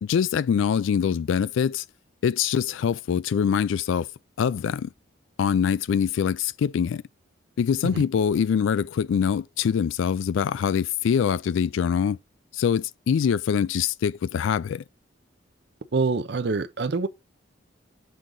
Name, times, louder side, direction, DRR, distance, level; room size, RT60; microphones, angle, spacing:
voice 1, 0.0-1.8 2.2-4.1 4.4-4.9 5.4-7.0 7.6-12.2 12.5-14.8, left 7 dB, 75° left, 0.3 m, -24 dB
voice 2, 15.9-17.1, right 4 dB, 55° right, 0.5 m, -25 dB
6.4 x 3.8 x 3.9 m
head